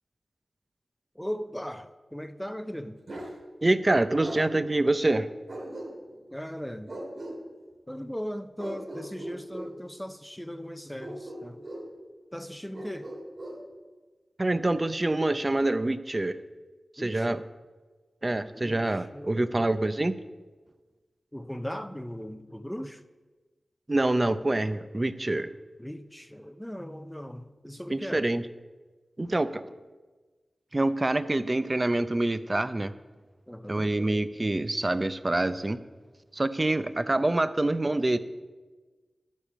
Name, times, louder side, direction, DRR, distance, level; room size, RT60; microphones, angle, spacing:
voice 1, 1.1-3.0 6.3-7.0 7.9-11.7 12.3-13.1 17.0-17.4 18.5-19.7 21.3-23.0 25.8-28.3 33.5-34.0, equal, 5° left, 0.6 m, -38 dB
Bark, 3.1-3.3 4.2-4.4 5.5-6.2 6.9-7.4 8.6-9.7 11.0-11.9 12.7-13.6, right 1 dB, 65° right, 3.0 m, -39 dB
voice 2, 3.6-5.3 14.4-16.4 17.0-17.4 18.2-20.2 23.9-25.5 27.9-28.4 29.2-29.6 30.7-32.9 33.7-35.8 36.3-38.2, right 2 dB, 35° right, 0.6 m, -26 dB
12.0 x 5.2 x 7.5 m
cardioid pair, 50°, 0 cm